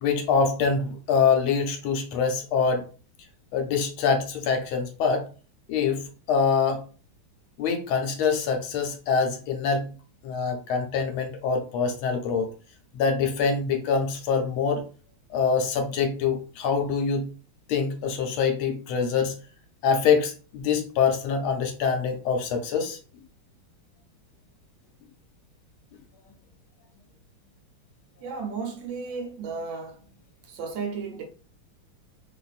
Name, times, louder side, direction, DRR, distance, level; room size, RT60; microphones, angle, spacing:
voice 1, 0.0-2.8 3.5-5.2 5.7-6.0 6.3-6.8 7.6-9.9 10.2-12.5 12.9-14.8 15.3-17.2 17.7-19.3 19.8-23.0, left 5 dB, 80° left, 1.5 m, -24 dB
voice 2, 28.2-30.0 30.5-31.2, right 5 dB, 70° right, 1.2 m, -33 dB
3.1 x 2.5 x 2.4 m
omnidirectional pair, 2.3 m